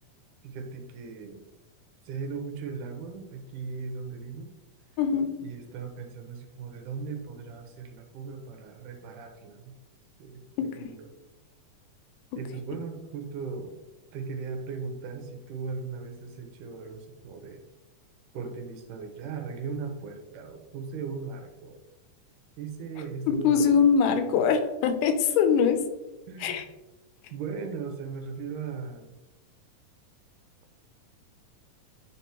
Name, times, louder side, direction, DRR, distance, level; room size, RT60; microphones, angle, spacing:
voice 1, 0.4-1.4 2.1-4.5 5.4-9.7 10.2-11.1 12.4-13.8 14.1-17.6 18.3-21.8 22.6-23.7 25.7-25.8 26.3-26.6 27.3-29.2, right 5 dB, 85° right, 4 dB, 2.3 m, -38 dB
voice 2, 5.0-5.3 10.6-10.9 23.3-25.8 26.4-26.6, left 6 dB, 80° left, 7 dB, 2.1 m, -23 dB
9.8 x 3.6 x 2.9 m, 1.1 s
omnidirectional pair, 3.6 m